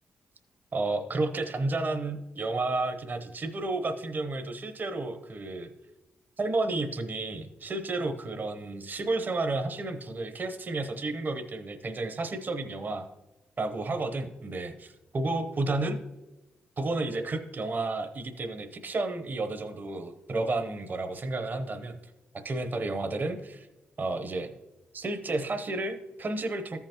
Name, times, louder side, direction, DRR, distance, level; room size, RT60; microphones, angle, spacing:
voice 1, 0.7-5.7 6.4-13.1 13.6-16.0 16.8-22.0 22.4-23.7 24.0-24.5 24.9-26.8, right 2 dB, 45° right, 8 dB, 0.8 m, -31 dB
14.0 x 5.7 x 3.0 m, 1.0 s
cardioid pair, 65°, 4 cm